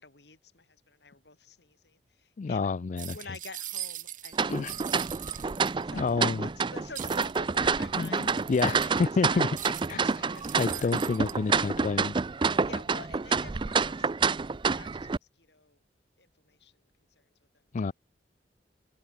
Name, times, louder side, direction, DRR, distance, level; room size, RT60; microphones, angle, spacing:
voice 1, 0.0-2.7 3.1-4.8 5.3-8.4 8.6-9.5 9.9-10.9 12.6-15.1 15.3-15.8 16.2-16.8 17.1-17.3 17.8-17.9, left 3 dB, 65° left, 4.5 m, -49 dB
voice 2, 2.4-3.2 4.5-4.8 5.9-6.5 8.0-8.9 9.2-9.5 9.9-10.0 10.6-12.2 17.7-17.9, left 4 dB, 45° left, 0.4 m, -29 dB
sound 1, 3.0-6.1 6.9-9.2 9.6-11.3, right 13 dB, 50° right, 2.4 m, -41 dB
sound 2, 4.3-15.2, right 5 dB, 30° right, 0.4 m, -28 dB
head